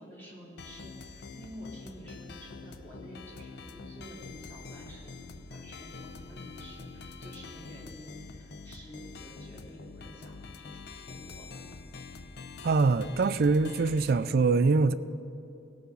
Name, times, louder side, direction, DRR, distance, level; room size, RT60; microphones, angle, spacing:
voice 1, 0.0-11.7, equal, 10° left, -6 dB, 2.6 m, -49 dB
sound 1, 0.6-14.3, left 4 dB, 55° left, 0.5 m, -45 dB
voice 2, 12.6-14.9, right 4 dB, 50° right, 14 dB, 0.4 m, -24 dB
17.5 x 6.8 x 5.3 m, 2.8 s
head